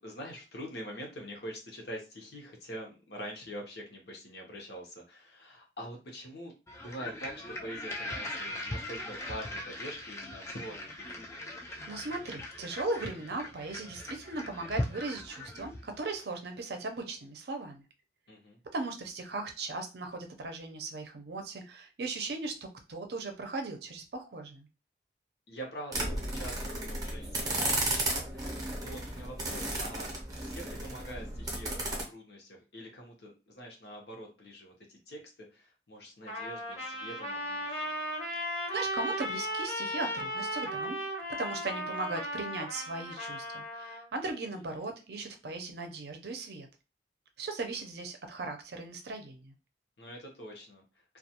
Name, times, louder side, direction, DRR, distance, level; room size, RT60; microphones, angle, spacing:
voice 1, 0.0-6.5 6.8-11.4 18.3-18.6 25.5-30.1 30.4-37.9 44.7-44.9 50.0-50.8, equal, 65° left, 1 dB, 0.8 m, -45 dB
sound 1, 6.7-16.0, left 1 dB, 15° left, 0.3 m, -40 dB
voice 2, 11.9-17.8 18.7-22.6 22.9-24.7 38.4-41.0 41.3-46.7 47.4-49.5, right 3 dB, 60° right, 4 dB, 0.5 m, -38 dB
sound 2, 25.9-32.0, right 1 dB, 20° right, 0.7 m, -34 dB
Trumpet, 36.3-44.1, equal, 35° left, 0.7 m, -36 dB
2.3 x 2.3 x 2.8 m, 0.30 s
head